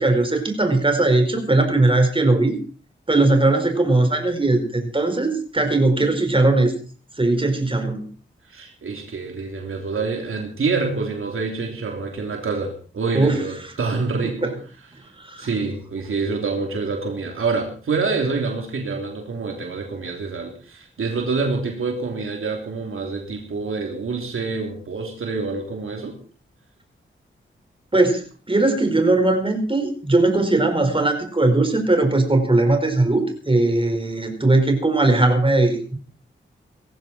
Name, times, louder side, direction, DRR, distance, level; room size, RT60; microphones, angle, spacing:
voice 1, 0.0-2.6 3.1-6.7 7.2-8.1 13.1-13.4 14.4-14.5 15.2-15.5 27.9-36.0, right 2 dB, 25° right, 5 dB, 4.9 m, -19 dB
voice 2, 8.5-14.6 15.4-26.2, right 4 dB, 85° right, 2 dB, 3.3 m, -26 dB
18.5 x 14.5 x 4.4 m, 0.39 s
cardioid pair, 60°, 21 cm